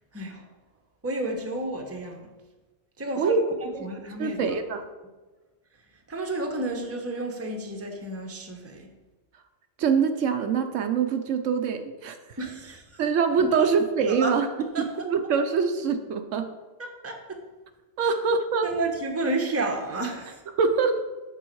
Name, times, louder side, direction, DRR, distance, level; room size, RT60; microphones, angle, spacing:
voice 1, 0.1-0.5 1.0-2.3 3.0-3.3 3.6-4.6 6.1-8.9 12.4-13.0 13.4-13.7 14.0-14.8 16.8-17.4 18.0-18.1 18.6-20.4, right 2 dB, 15° right, 3 dB, 0.8 m, -31 dB
voice 2, 4.2-4.9 9.8-12.4 13.0-14.5 14.8-16.5 18.0-18.7 20.6-21.0, right 5 dB, 75° right, 7 dB, 1.0 m, -24 dB
6.9 x 6.9 x 4.6 m, 1.2 s
omnidirectional pair, 1.3 m